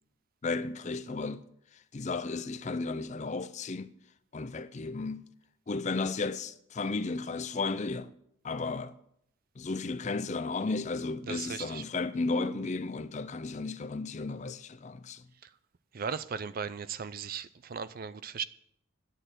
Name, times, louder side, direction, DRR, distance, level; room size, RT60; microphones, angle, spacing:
voice 1, 0.4-1.4 1.7-3.9 4.3-5.3 5.7-8.1 8.4-8.9 9.6-15.3, left 3 dB, 35° left, 0.5 m, -34 dB
voice 2, 11.3-11.8 15.9-18.4, right 6 dB, 40° right, 0.4 m, -37 dB
10.0 x 6.5 x 9.0 m
head